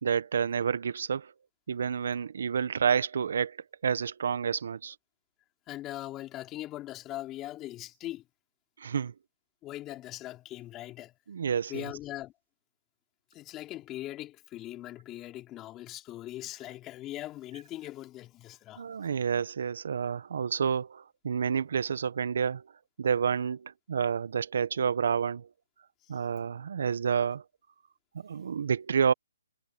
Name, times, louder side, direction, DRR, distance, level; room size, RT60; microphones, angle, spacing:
voice 1, 0.0-1.3 1.7-3.6 3.8-4.9 8.8-9.1 11.3-11.9 18.8-22.7 23.0-25.5 26.1-27.4 28.1-29.1, right 7 dB, 65° right, 1.4 m, -29 dB
voice 2, 5.7-8.3 9.6-11.1 11.7-12.3 13.3-18.8 26.0-26.1, left 15 dB, 20° left, 3.9 m, -40 dB
hypercardioid pair, 150°, 0 cm